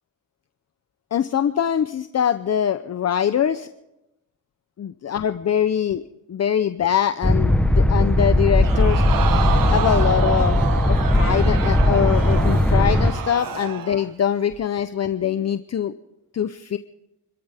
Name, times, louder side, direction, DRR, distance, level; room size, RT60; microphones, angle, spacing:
voice 1, 1.1-3.7 4.8-6.0 6.3-9.0 9.7-10.6 10.9-15.9 16.3-16.8, left 9 dB, 50° left, 10 dB, 0.7 m, -23 dB
sound 1, 7.2-13.1, left 1 dB, 5° left, 1.0 m, -18 dB
Crowd, 8.6-14.1 14.5-14.6, right 7 dB, 75° right, 1.4 m, -28 dB
29.5 x 14.0 x 3.5 m, 0.89 s
cardioid pair, 115°, 34 cm